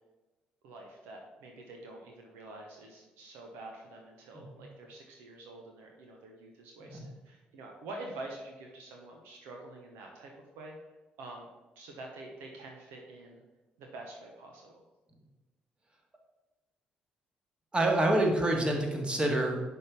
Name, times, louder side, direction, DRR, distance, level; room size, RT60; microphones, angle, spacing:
voice 1, 0.6-10.8 11.2-11.5 11.8-13.4 13.8-14.8, right 2 dB, 65° right, 1 dB, 0.9 m, -47 dB
voice 2, 4.3-4.7 6.8-7.0 17.7-19.6, right 1 dB, 25° right, 1 dB, 1.8 m, -27 dB
10.5 x 3.6 x 5.7 m, 1.1 s
figure-of-eight pair, 45°, 4 cm